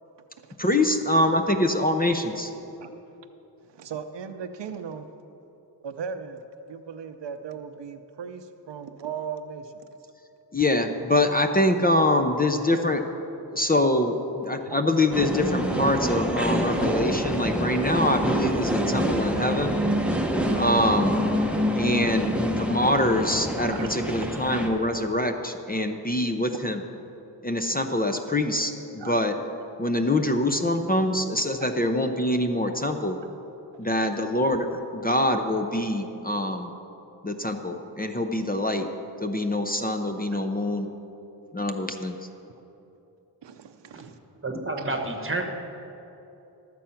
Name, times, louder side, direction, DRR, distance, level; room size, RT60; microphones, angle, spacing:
voice 1, 0.6-2.5 10.5-13.0 13.5-19.8 20.6-21.2 21.7-26.8 27.4-29.4 29.8-33.2 33.8-34.7 34.9-36.7 37.2-38.9 39.2-40.9 41.5-42.2, left 1 dB, 20° left, 6 dB, 0.6 m, -24 dB
voice 2, 3.7-5.1 5.8-6.4 6.7-9.9 14.7-14.8 22.3-22.5 23.7-23.9 24.7-24.8 28.1-28.2 29.0-29.1 31.6-31.7 33.7-34.1 43.4-44.2 44.8-44.9, right 6 dB, 90° right, 9 dB, 0.6 m, -37 dB
sound 1, 15.1-24.7, equal, 5° right, 1.0 m, -26 dB
voice 3, 44.4-45.5, right 2 dB, 30° right, 4 dB, 1.3 m, -30 dB
12.5 x 7.7 x 5.8 m, 3.0 s
wide cardioid pair, 75°, 41 cm